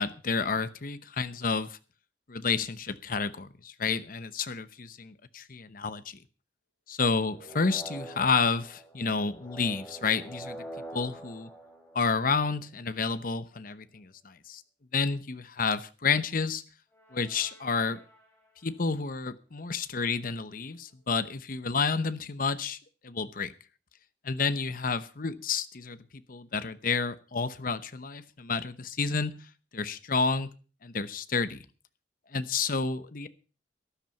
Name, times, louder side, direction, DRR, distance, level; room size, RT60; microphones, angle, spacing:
voice 1, 0.0-1.8 2.3-6.2 6.9-10.6 10.9-11.5 11.9-14.6 14.9-16.6 17.1-18.0 18.6-22.8 23.0-23.5 24.2-29.3 29.7-30.5 30.8-31.7 32.3-33.3, left 4 dB, 50° left, 13 dB, 0.9 m, -30 dB
sound 1, 7.3-12.6 16.9-18.6, right 1 dB, 10° left, 5.7 m, -46 dB
13.0 x 11.0 x 5.5 m, 0.36 s
head